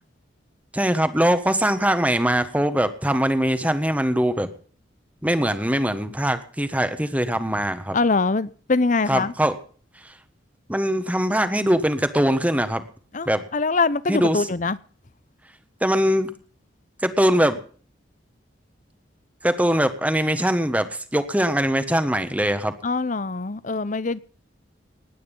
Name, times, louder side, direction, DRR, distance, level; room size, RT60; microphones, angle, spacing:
voice 1, 0.7-4.5 5.2-8.0 9.1-9.6 10.0-10.1 10.7-12.9 13.2-13.4 14.1-14.5 15.8-16.3 17.0-17.6 19.4-22.7, equal, 10° right, 1.3 m, -22 dB
voice 2, 7.9-9.3 13.1-14.8 22.8-24.2, left 3 dB, 40° left, 0.8 m, -23 dB
19.0 x 9.4 x 5.4 m
head